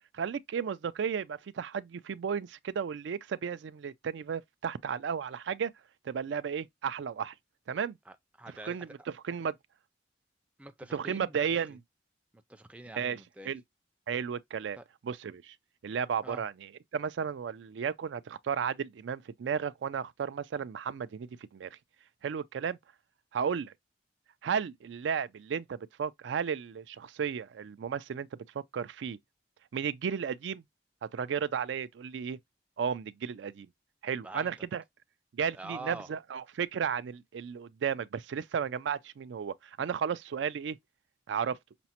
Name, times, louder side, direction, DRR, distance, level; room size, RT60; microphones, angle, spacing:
voice 1, 0.1-5.7 6.0-7.3 7.7-8.0 8.7-8.9 9.2-9.5 10.9-11.8 13.0-13.2 13.4-13.6 14.1-14.8 15.0-15.5 15.8-21.7 22.2-22.8 23.3-23.7 24.4-28.3 28.5-29.2 29.7-30.6 31.1-32.4 32.8-33.7 34.0-34.8 35.3-40.8 41.3-41.6, right 7 dB, 85° right, 0.4 m, -34 dB
voice 2, 8.1-8.8 10.6-11.4 12.5-13.5 14.8-14.9 16.2-16.4 34.2-34.7 35.5-36.1, right 2 dB, 5° right, 0.3 m, -45 dB
5.9 x 2.0 x 2.8 m
head